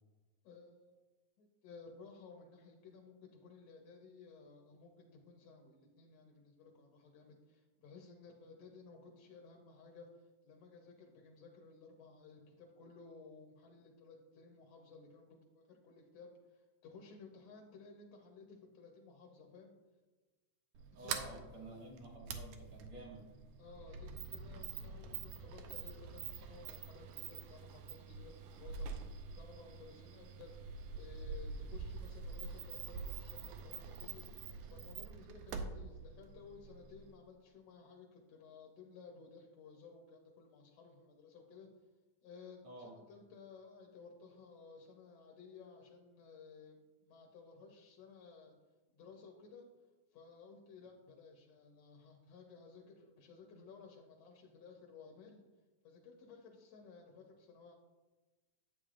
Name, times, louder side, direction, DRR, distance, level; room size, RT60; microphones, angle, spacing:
voice 1, 0.4-1.0 1.4-19.7 21.0-21.9 23.6-34.2 34.7-41.7 42.2-48.5 48.9-49.6 50.1-55.4 55.8-57.7, left 4 dB, 65° left, 1 dB, 1.8 m, -57 dB
Sliding door, 20.7-37.1, right 5 dB, 80° right, 2.0 m, -46 dB
voice 2, 20.9-23.3 42.6-42.9, right 2 dB, 60° right, -2 dB, 3.1 m, -51 dB
10.0 x 8.4 x 2.5 m, 1.2 s
omnidirectional pair, 3.6 m